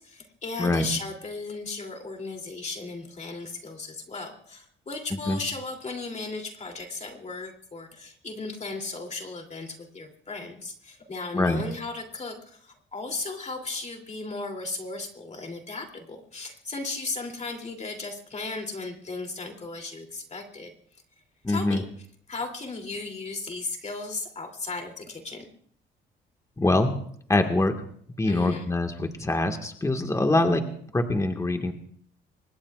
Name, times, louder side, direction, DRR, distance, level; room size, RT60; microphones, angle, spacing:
voice 1, 0.0-20.7 21.5-21.8 22.3-25.5 28.2-28.7, left 3 dB, 35° left, 3 dB, 3.0 m, -36 dB
voice 2, 21.4-21.8 26.6-27.0 27.3-27.8 28.2-30.7 30.9-31.7, left 2 dB, 15° left, 5 dB, 1.7 m, -24 dB
25.0 x 20.0 x 2.4 m, 0.62 s
cardioid pair, 90°, 20 cm